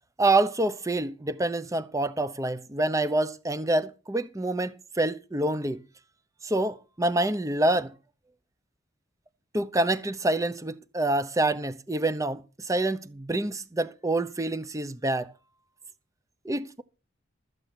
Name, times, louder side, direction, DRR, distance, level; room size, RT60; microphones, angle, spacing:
voice 1, 0.2-5.8 6.4-7.9 9.5-12.4 12.7-15.3 16.4-16.8, right 2 dB, 15° right, 0.7 m, -27 dB
13.5 x 8.1 x 5.8 m
head